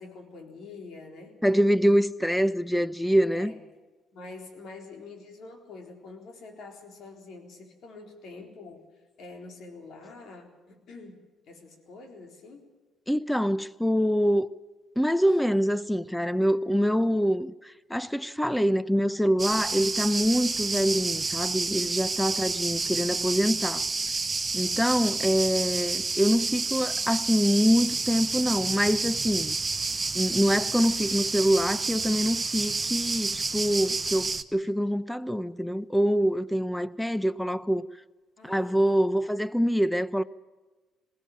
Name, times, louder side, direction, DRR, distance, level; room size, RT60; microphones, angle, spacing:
voice 1, 0.0-1.4 3.3-3.6 4.1-8.8 9.2-12.7 38.4-39.1, left 3 dB, 65° left, 4.0 m, -46 dB
voice 2, 1.4-3.5 13.1-14.5 15.0-23.8 24.5-29.6 30.1-37.9 38.4-40.2, equal, 5° left, 0.8 m, -25 dB
sound 1, 19.4-34.4, right 3 dB, 25° right, 1.1 m, -29 dB
20.5 x 16.5 x 8.7 m
supercardioid pair, 65°, 0 cm